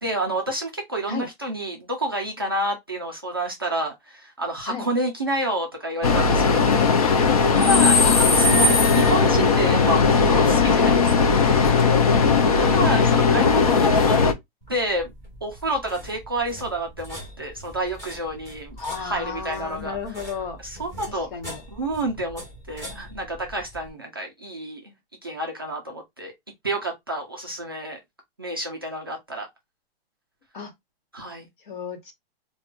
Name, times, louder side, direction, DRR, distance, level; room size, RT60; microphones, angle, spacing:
voice 1, 0.0-7.2 7.5-11.7 12.6-14.2 14.7-15.1 15.4-20.0 20.8-21.3 21.7-22.4 22.7-24.9 25.2-26.3 26.6-28.0 28.4-29.5 31.1-31.4, right 1 dB, 25° right, 0.3 m, -29 dB
sound 1, 6.0-14.3, left 4 dB, 40° left, 0.4 m, -18 dB
sound 2, 14.6-23.9, equal, 10° left, 1.3 m, -42 dB
voice 2, 18.8-20.6 21.1-21.6 30.5-30.7 31.6-32.1, left 5 dB, 55° left, 1.2 m, -33 dB
4.3 x 2.2 x 2.4 m
hypercardioid pair, 180°, 31 cm